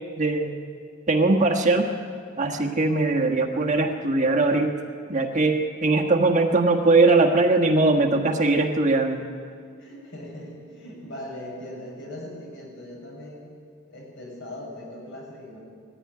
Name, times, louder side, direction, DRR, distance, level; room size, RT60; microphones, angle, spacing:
voice 1, 0.2-0.5 1.1-1.9 2.4-4.8 5.1-9.2, right 3 dB, 35° right, 3 dB, 1.4 m, -20 dB
voice 2, 9.8-13.5 13.9-15.6, left 1 dB, 60° left, -2 dB, 7.1 m, -39 dB
19.0 x 15.0 x 9.6 m, 2.2 s
head